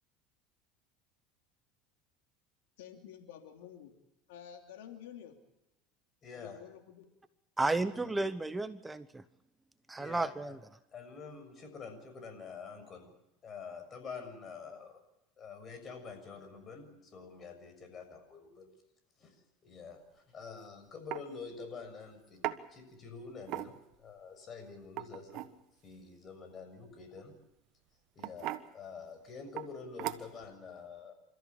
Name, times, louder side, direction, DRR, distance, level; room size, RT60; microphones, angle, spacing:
voice 1, 2.8-3.9 4.3-5.4 6.3-7.1, left 9 dB, 85° left, 5 dB, 2.9 m, -50 dB
voice 2, 6.2-6.6 8.0-8.2 10.0-10.6 10.9-13.1 13.4-15.0 15.4-18.7 19.2-25.5 25.8-27.3 28.1-31.1, left 5 dB, 35° left, 7 dB, 6.6 m, -47 dB
voice 3, 7.6-9.2 9.9-10.6, right 2 dB, 10° right, 12 dB, 0.9 m, -33 dB
sound 1, 20.4-20.6 21.1-21.3 22.4-22.6 23.4-24.0 24.8-25.5 27.2-27.4 28.2-28.7 29.6-29.7 30.0-30.5, right 15 dB, 60° right, 1.4 m, -38 dB
29.0 x 14.0 x 8.5 m, 0.90 s
supercardioid pair, 110°, 0 cm